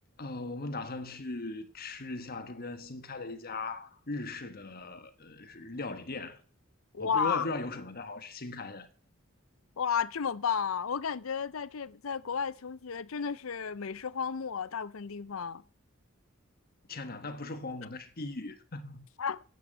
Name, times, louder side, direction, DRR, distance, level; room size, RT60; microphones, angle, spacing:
voice 1, 0.2-6.4 7.0-8.9 16.9-19.1, left 2 dB, 45° left, 1.4 m, -39 dB
voice 2, 6.9-7.5 9.8-15.6 19.2-19.4, left 6 dB, 85° left, 0.6 m, -32 dB
10.5 x 8.2 x 8.0 m
head